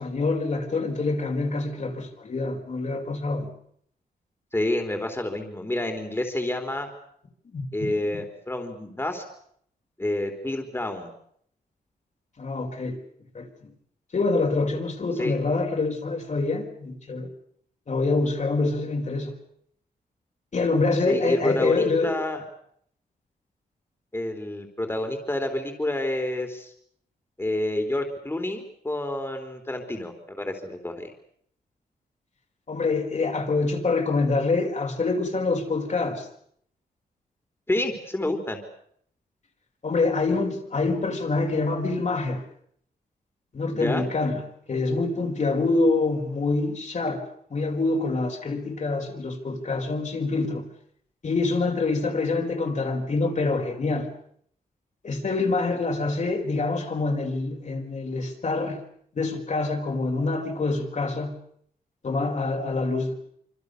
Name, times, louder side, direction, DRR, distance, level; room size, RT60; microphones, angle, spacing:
voice 1, 0.0-3.5 7.5-7.9 12.4-13.0 13.3-13.7 14.1-17.3 17.9-19.3 20.5-22.1 32.7-36.3 39.8-42.4 43.5-44.4 44.7-47.2 47.5-50.7 51.2-54.1 55.0-58.8 59.1-61.4 62.0-63.1, left 3 dB, 50° left, 2 dB, 5.1 m, -26 dB
voice 2, 4.5-6.9 7.7-9.2 10.0-11.1 15.2-15.4 21.1-22.4 24.1-26.7 27.4-31.1 37.7-38.6 43.7-44.1, left 1 dB, 15° left, 4 dB, 3.9 m, -28 dB
27.0 x 25.5 x 6.8 m, 0.68 s
cardioid pair, 90°, 16 cm